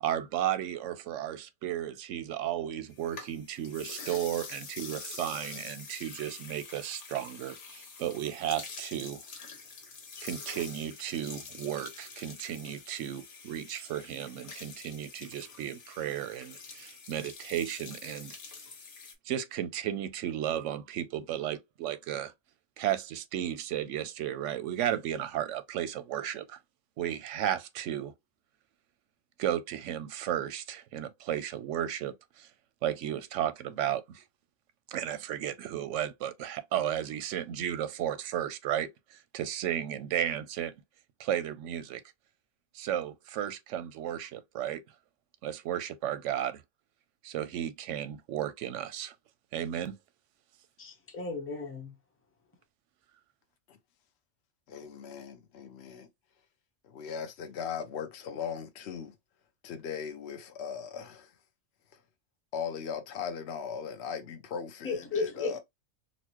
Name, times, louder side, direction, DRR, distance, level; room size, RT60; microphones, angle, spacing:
voice 1, 0.0-9.2 10.2-18.4 19.2-22.3 22.8-26.6 27.0-28.1 29.4-32.5 32.8-34.2 34.9-40.7 41.2-42.0 42.7-44.8 45.4-46.6 47.2-49.2 49.5-50.0, right 11 dB, 90° right, 0.9 m, -34 dB
sound 1, 2.9-19.1, left 4 dB, 85° left, 1.3 m, -46 dB
voice 2, 50.8-51.9 64.8-65.6, left 4 dB, 15° left, 0.7 m, -34 dB
voice 3, 54.7-56.1 56.8-59.1 59.6-61.3 61.9-62.0 62.5-65.6, left 7 dB, 65° left, 1.0 m, -38 dB
4.1 x 2.1 x 2.9 m
omnidirectional pair, 1.2 m